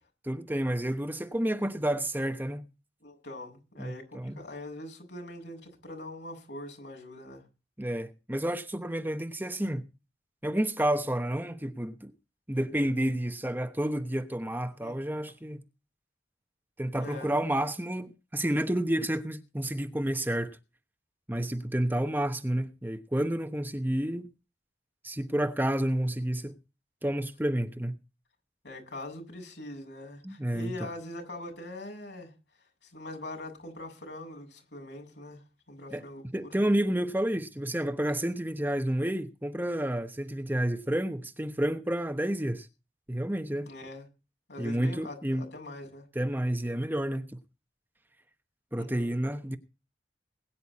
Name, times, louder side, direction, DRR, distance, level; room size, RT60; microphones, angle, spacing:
voice 1, 0.2-2.6 3.8-4.4 7.8-9.8 10.4-12.1 12.5-15.6 16.8-20.6 21.3-24.3 25.0-26.5 27.0-28.0 30.2-30.9 35.9-36.0 36.3-42.7 43.1-43.7 44.6-45.5 46.1-47.3 48.7-49.6, right 1 dB, 10° right, 1.0 m, -30 dB
voice 2, 3.0-7.4 14.8-14.9 17.0-17.3 28.6-32.3 32.8-36.5 43.7-44.1 44.5-46.1 48.8-49.1, left 1 dB, 80° left, 7.6 m, -42 dB
21.5 x 10.5 x 4.2 m
head